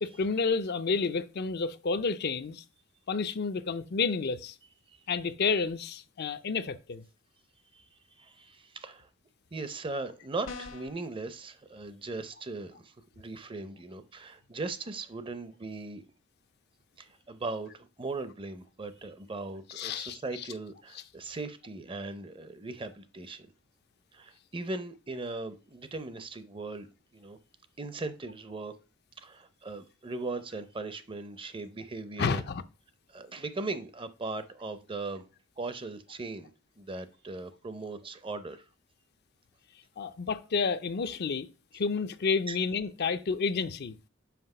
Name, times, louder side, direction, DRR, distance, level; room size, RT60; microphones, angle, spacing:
voice 1, 0.0-2.6 3.1-4.5 5.1-7.0 19.8-20.2 32.2-32.6 40.0-41.5 41.7-44.0, left 4 dB, 55° left, 0.5 m, -30 dB
voice 2, 8.2-9.1 9.5-16.0 17.0-23.5 24.1-26.9 27.1-27.4 27.8-28.7 29.2-32.4 33.1-35.2 35.6-36.5 36.8-38.6 42.5-42.6, right 3 dB, 25° right, 0.6 m, -39 dB
sound 1, 10.4-11.0, left 4 dB, 75° left, 1.2 m, -42 dB
5.9 x 5.4 x 5.4 m
head